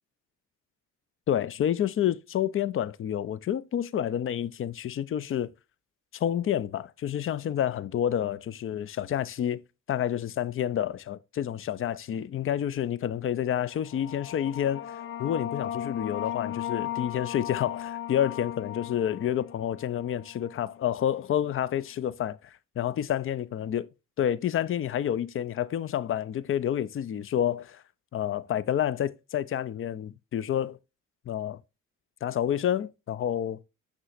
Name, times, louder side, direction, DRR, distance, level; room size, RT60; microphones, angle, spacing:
voice 1, 1.3-5.5 6.1-9.6 9.9-23.9 24.2-27.8 28.1-30.8 31.3-31.6 32.2-33.6, left 10 dB, 30° left, 0.5 m, -29 dB
sound 1, 13.7-21.0, left 11 dB, 55° left, 0.8 m, -37 dB
6.3 x 6.1 x 2.5 m
figure-of-eight pair, 45°, 45 cm